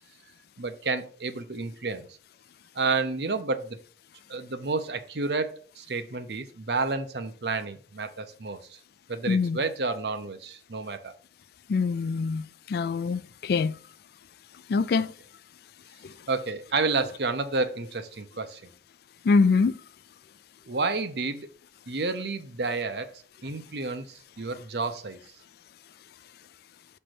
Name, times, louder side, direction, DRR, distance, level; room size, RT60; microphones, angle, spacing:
voice 1, 0.6-2.2 2.7-3.8 4.3-8.8 9.1-11.1 15.0-15.1 16.3-18.7 20.6-21.5 21.9-25.2, right 3 dB, 65° right, 0.8 m, -30 dB
voice 2, 9.3-9.6 11.7-13.7 14.7-15.1 19.3-19.7, left 4 dB, 60° left, 0.3 m, -24 dB
6.4 x 3.3 x 6.0 m
head